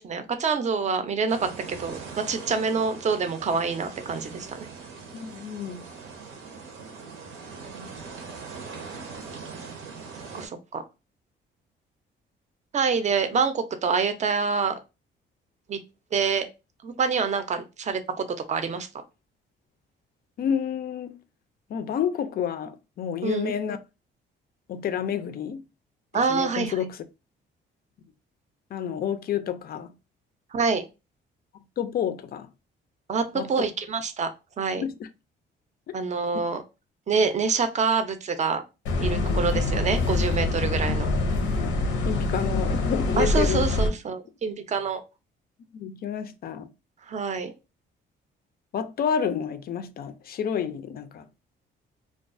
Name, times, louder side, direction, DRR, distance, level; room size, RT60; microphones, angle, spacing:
voice 1, 0.0-4.7 7.7-7.9 10.3-10.8 12.7-14.7 15.7-15.8 16.1-16.4 16.8-18.9 23.2-23.5 26.1-26.7 30.5-30.8 33.1-34.3 34.6-34.8 35.9-36.6 37.1-38.6 39.0-41.1 43.2-45.0 47.1-47.5, right 5 dB, 35° right, 0.5 m, -26 dB
sound 1, 1.3-10.5, right 4 dB, 90° right, 0.7 m, -41 dB
voice 2, 5.1-5.8 20.4-21.2 21.7-23.8 24.7-25.6 26.1-27.0 28.7-29.9 31.5-32.5 33.3-33.5 34.8-35.1 39.2-39.5 41.3-41.8 42.1-43.6 45.7-46.7 48.7-51.3, left 8 dB, 50° left, 0.4 m, -30 dB
sound 2, 38.9-43.9, left 2 dB, 90° left, 0.6 m, -25 dB
2.3 x 2.3 x 2.4 m
cardioid pair, 90°, 20 cm